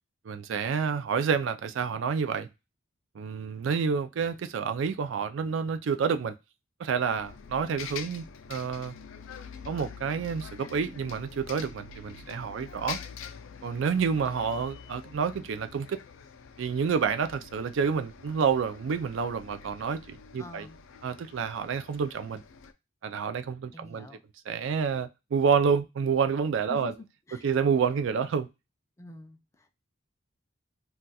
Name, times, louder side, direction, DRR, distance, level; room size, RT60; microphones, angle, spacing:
voice 1, 0.3-2.5 3.2-6.4 6.8-8.9 9.7-13.0 13.6-16.0 16.6-20.7 21.0-22.4 23.0-24.1 24.5-26.9 27.4-28.5, right 6 dB, 70° right, 0.4 m, -28 dB
Bus, 6.9-22.7, left 6 dB, 80° left, 0.4 m, -45 dB
voice 2, 20.4-20.8 23.7-24.2 26.7-27.5 29.0-29.7, left 3 dB, 15° left, 0.4 m, -46 dB
2.3 x 2.3 x 3.9 m
head